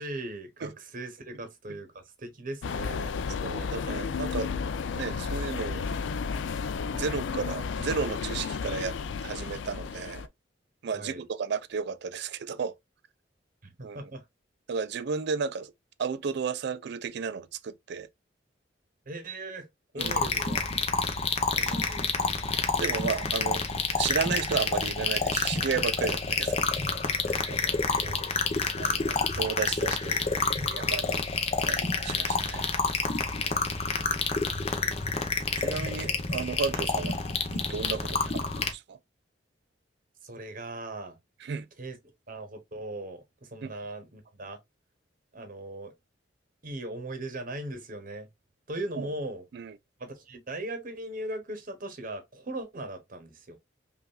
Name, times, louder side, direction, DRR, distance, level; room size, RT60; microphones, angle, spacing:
voice 1, 0.0-3.1 10.9-11.2 13.6-14.2 19.1-19.7 19.9-20.7 21.6-22.1 27.3-27.9 33.4-34.5 40.2-41.2 41.8-42.0 42.3-44.6 45.3-45.9 46.6-48.3 48.7-49.4 50.0-53.6, right 1 dB, 45° right, 0.9 m, -39 dB
sound 1, 2.6-10.3, left 5 dB, 75° left, 0.4 m, -33 dB
voice 2, 3.4-4.5 4.9-5.9 6.9-9.0 9.2-10.3 10.8-12.7 13.8-14.0 14.7-15.7 16.0-18.1 20.0-20.2 22.8-23.6 24.0-26.6 27.3-27.5 28.0-28.3 28.8-31.2 31.7-32.7 35.6-39.0 41.4-41.7 43.6-43.7 49.0-49.1 49.5-49.8, right 6 dB, 65° right, 0.4 m, -33 dB
sound 2, 20.0-38.7, left 4 dB, 35° left, 0.7 m, -28 dB
5.3 x 2.4 x 2.2 m
head